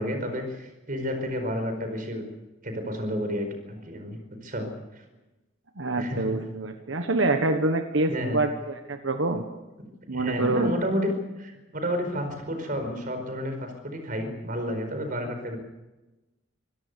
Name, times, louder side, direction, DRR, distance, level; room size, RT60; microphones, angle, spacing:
voice 1, 0.0-2.2 2.6-4.7 4.9-5.0 6.0-6.4 8.1-8.4 10.1-11.1 11.4-15.6, equal, 45° right, 6 dB, 4.9 m, -31 dB
voice 2, 5.8-9.4 10.1-10.7, right 2 dB, 90° right, 6 dB, 1.4 m, -26 dB
25.0 x 17.0 x 6.9 m, 1.1 s
head